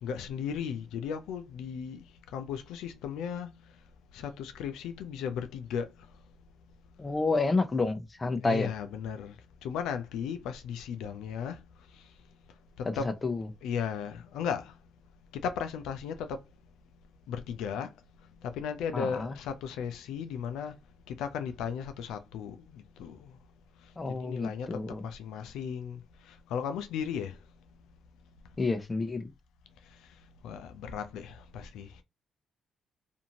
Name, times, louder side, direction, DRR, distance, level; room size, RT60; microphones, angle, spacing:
voice 1, 0.0-2.0 2.3-3.5 4.1-5.9 8.4-9.4 9.6-11.6 13.0-13.1 13.6-14.7 15.4-16.4 17.3-17.9 18.5-20.7 21.1-23.2 24.1-26.0 26.5-27.4 30.4-31.9, left 7 dB, 90° left, 0.4 m, -35 dB
voice 2, 7.0-8.7 13.0-13.5 18.9-19.4 24.0-25.0 28.6-29.3, left 3 dB, 25° left, 0.6 m, -29 dB
2.6 x 2.5 x 2.8 m
cardioid pair, 90°, 0 cm